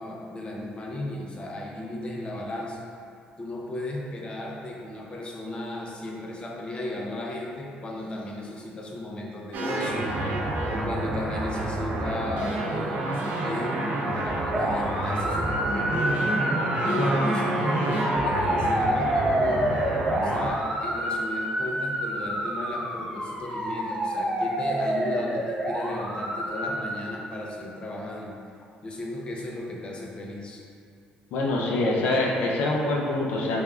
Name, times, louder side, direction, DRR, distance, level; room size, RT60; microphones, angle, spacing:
voice 1, 0.0-2.8 3.4-10.1 10.7-16.3 16.8-19.7 20.2-28.3 28.8-30.6, left 1 dB, 30° left, -2 dB, 0.5 m, -35 dB
sound 1, 9.5-20.5, right 1 dB, 65° right, 0.5 m, -28 dB
sound 2, 14.5-26.9, right 1 dB, 20° right, 1.1 m, -28 dB
voice 2, 31.3-33.6, left 2 dB, 80° left, -2 dB, 0.5 m, -25 dB
3.5 x 3.4 x 2.3 m, 2.3 s
cardioid pair, 105°, 3 cm